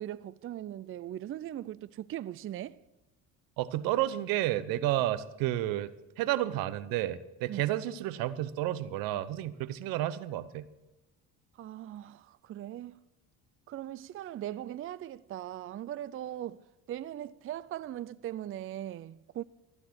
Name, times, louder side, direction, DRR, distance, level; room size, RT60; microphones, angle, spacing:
voice 1, 0.0-2.8 7.5-7.6 11.6-13.0 13.7-16.6 16.9-19.4, right 12 dB, 40° right, 0.4 m, -39 dB
voice 2, 3.6-5.9 6.2-10.7, right 14 dB, 80° right, 0.9 m, -31 dB
14.5 x 9.8 x 6.1 m
supercardioid pair, 90°, 34 cm